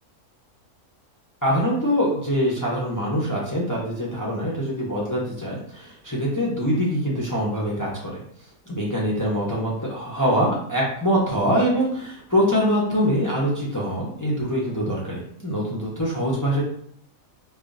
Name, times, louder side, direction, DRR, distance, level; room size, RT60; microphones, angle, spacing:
voice 1, 1.4-8.2 8.7-16.6, equal, 20° left, -5 dB, 0.5 m, -24 dB
5.5 x 2.4 x 2.6 m, 0.65 s
omnidirectional pair, 1.6 m